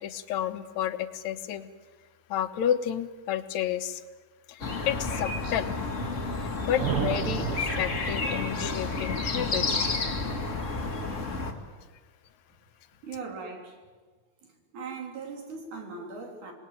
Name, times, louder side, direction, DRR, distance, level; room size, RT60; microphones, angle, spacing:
voice 1, 0.0-1.7 2.3-4.0 4.5-5.7 6.4-9.7, left 10 dB, 75° left, 10 dB, 2.2 m, -31 dB
sound 1, 4.6-11.5, left 3 dB, 25° left, 2.1 m, -31 dB
sound 2, 6.8-8.8, right 9 dB, 60° right, 1.6 m, -32 dB
voice 2, 13.0-13.8 14.7-16.5, right 4 dB, 90° right, 2 dB, 5.0 m, -39 dB
26.5 x 20.0 x 9.1 m, 1.4 s
omnidirectional pair, 3.4 m